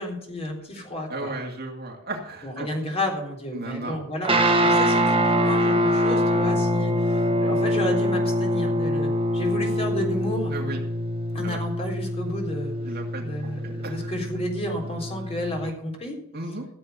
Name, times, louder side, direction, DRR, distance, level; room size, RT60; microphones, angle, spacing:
voice 1, 0.0-1.3 2.4-10.5 11.3-16.2, left 1 dB, 30° left, 1 dB, 3.7 m, -32 dB
voice 2, 1.1-2.7 3.5-4.0 10.5-10.8 11.4-11.6 12.8-13.5 13.8-14.1 16.3-16.7, right 2 dB, 50° right, 2 dB, 2.3 m, -34 dB
Guitar, 4.2-15.7, equal, 25° right, 1.6 m, -24 dB
15.0 x 7.8 x 6.8 m, 0.72 s
head